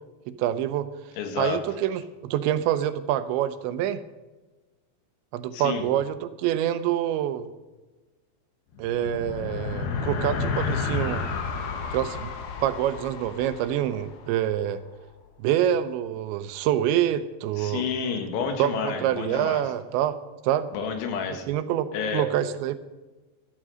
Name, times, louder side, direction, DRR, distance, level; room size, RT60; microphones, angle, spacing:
voice 1, 0.3-0.9 1.4-4.0 5.3-7.5 8.8-11.2 11.9-12.3 12.6-14.8 15.4-17.8 18.6-20.2 20.4-20.7 21.5-22.8, right 11 dB, 85° right, 11 dB, 3.1 m, -26 dB
voice 2, 1.2-1.6 5.5-5.8 17.6-19.6 20.7-21.5 21.9-22.3, left 6 dB, 85° left, 5 dB, 4.1 m, -29 dB
sound 1, 8.7-14.5, left 5 dB, 65° left, 3.1 m, -31 dB
13.5 x 12.5 x 6.4 m, 1.2 s
omnidirectional pair, 5.2 m